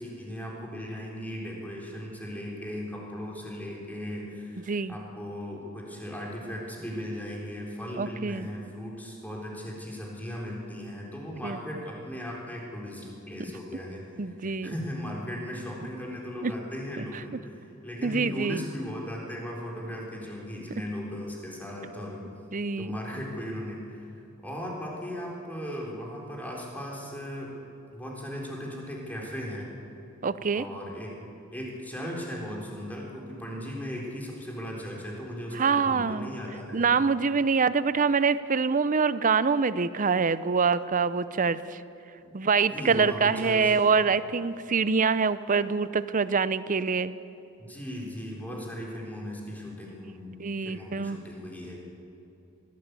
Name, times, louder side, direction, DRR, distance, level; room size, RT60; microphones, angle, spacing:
voice 1, 0.0-22.3 22.8-24.1 24.4-27.5 27.9-29.7 30.5-31.1 31.5-36.9 42.2-42.4 42.7-44.0 47.6-50.3 50.6-51.8, equal, 10° left, -2 dB, 4.0 m, -37 dB
voice 2, 8.0-8.5 11.4-11.6 14.2-14.7 16.4-16.5 18.0-18.6 22.5-23.0 30.2-30.6 35.6-36.3 36.7-41.8 42.3-47.1 50.4-51.2, right 5 dB, 40° right, 15 dB, 0.6 m, -25 dB
21.5 x 15.5 x 8.3 m, 2.8 s
head